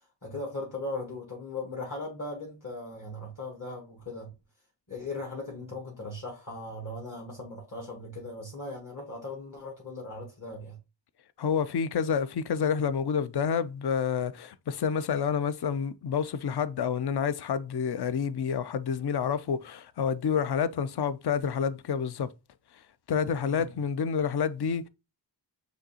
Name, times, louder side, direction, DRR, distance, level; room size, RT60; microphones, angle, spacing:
voice 1, 0.2-4.3 4.9-10.8 23.5-23.7, left 2 dB, 40° left, 1.5 m, -38 dB
voice 2, 11.4-22.3 23.1-24.9, left 7 dB, 60° left, 0.5 m, -28 dB
6.2 x 2.7 x 2.8 m
wide cardioid pair, 45°, 46 cm